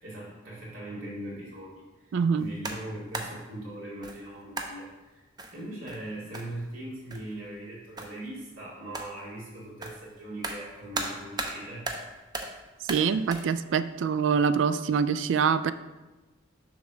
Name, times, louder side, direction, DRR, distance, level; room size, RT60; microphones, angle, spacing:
voice 1, 0.0-11.9, right 1 dB, 90° right, -5 dB, 2.3 m, -40 dB
voice 2, 2.1-2.5 12.8-15.7, right 6 dB, 65° right, 14 dB, 0.3 m, -25 dB
sound 1, 2.4-3.4 4.0-4.2 4.6-4.9 5.4-6.8 7.1-7.4 8.0-8.3 8.9-9.2 9.8-11.6 11.9-12.6 12.9-13.5, right 2 dB, 20° right, 0.5 m, -37 dB
6.9 x 3.2 x 6.0 m, 1.1 s
head